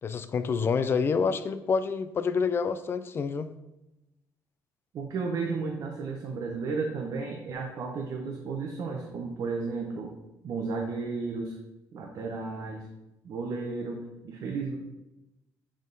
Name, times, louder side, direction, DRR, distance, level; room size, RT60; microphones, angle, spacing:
voice 1, 0.0-3.5, left 5 dB, 35° left, 12 dB, 0.4 m, -27 dB
voice 2, 4.9-10.1 10.4-11.6 11.9-12.8 13.2-14.0 14.2-14.8, right 4 dB, 55° right, 1 dB, 0.8 m, -33 dB
7.3 x 3.7 x 3.9 m, 0.96 s
cardioid pair, 135°, 7 cm